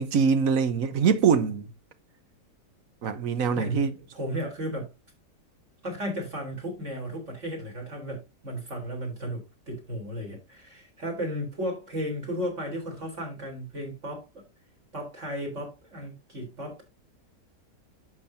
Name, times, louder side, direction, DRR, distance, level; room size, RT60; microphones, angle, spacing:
voice 1, 0.0-1.7 3.0-3.9, right 6 dB, 60° right, 1.2 m, -23 dB
voice 2, 3.5-4.9 5.8-14.4 14.9-16.8, equal, 45° right, 4.2 m, -34 dB
11.0 x 7.1 x 2.8 m
omnidirectional pair, 1.8 m